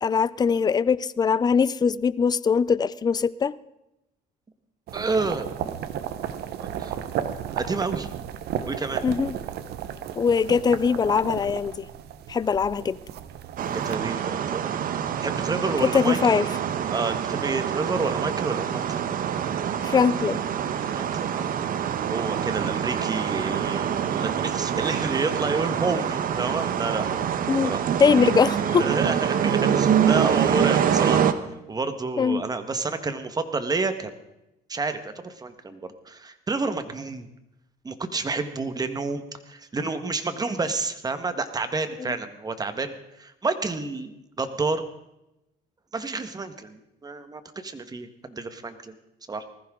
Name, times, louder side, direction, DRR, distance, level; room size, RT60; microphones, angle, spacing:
voice 1, 0.0-3.6 9.0-9.3 10.2-11.9 12.3-13.0 15.8-16.5 19.8-20.4 27.5-27.7 28.0-28.9 32.2-32.4 42.0-42.1, left 6 dB, 25° left, 0.5 m, -21 dB
voice 2, 4.9-5.8 6.6-6.9 7.5-8.1 8.6-9.0 13.7-16.2 16.9-19.1 20.9-21.5 22.1-27.2 27.6-27.8 28.6-31.3 31.7-34.1 34.7-35.8 36.0-37.3 37.8-44.8 45.9-48.9 49.3-49.4, right 3 dB, 20° right, 1.5 m, -29 dB
sound 1, 4.9-14.0, right 9 dB, 75° right, 1.2 m, -34 dB
sound 2, 13.6-31.3, right 8 dB, 55° right, 1.1 m, -25 dB
19.5 x 15.0 x 3.8 m
cardioid pair, 110°, 17 cm